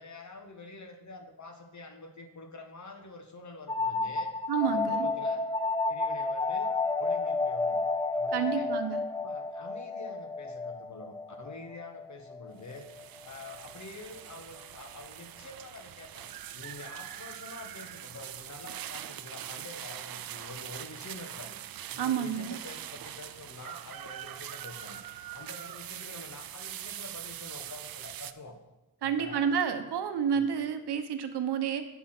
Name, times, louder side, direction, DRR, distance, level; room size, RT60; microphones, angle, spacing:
voice 1, 0.0-4.3 4.6-5.5 5.9-6.7 7.0-7.9 8.1-8.7 9.1-28.6 29.0-29.5 30.3-30.5, left 3 dB, 45° left, 5 dB, 1.4 m, -47 dB
sound 1, 3.7-13.1, left 3 dB, 10° left, 0.4 m, -31 dB
voice 2, 4.5-5.1 8.3-9.0 22.0-22.6 29.0-31.8, right 7 dB, 75° right, 9 dB, 0.9 m, -29 dB
sound 2, 12.6-28.3, right 11 dB, 60° right, 0.5 m, -43 dB
8.4 x 5.9 x 5.9 m, 1.0 s
cardioid pair, 55°, 40 cm